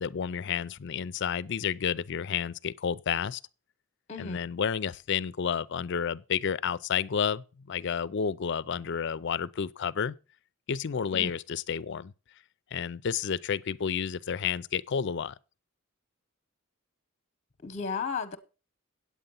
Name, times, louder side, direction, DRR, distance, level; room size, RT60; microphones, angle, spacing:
voice 1, 0.0-3.4 4.2-10.2 10.7-12.1 12.7-15.3, left 7 dB, 55° left, 0.4 m, -31 dB
voice 2, 17.6-18.4, left 5 dB, 30° left, 0.9 m, -34 dB
9.0 x 8.4 x 5.4 m
head